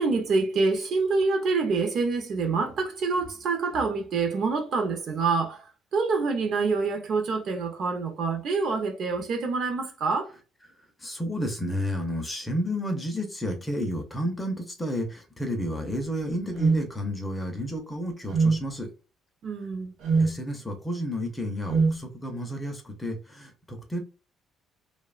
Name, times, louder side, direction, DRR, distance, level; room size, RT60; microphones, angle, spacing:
voice 1, 0.0-10.3 19.4-19.9, right 4 dB, 45° right, 0.4 m, -26 dB
voice 2, 11.0-18.9 20.2-24.0, equal, 10° left, 0.4 m, -31 dB
sound 1, 16.6-16.8 18.3-18.6 20.0-20.3 21.7-22.0, right 4 dB, 80° right, 0.7 m, -22 dB
2.8 x 2.0 x 2.3 m
cardioid pair, 175°, 0 cm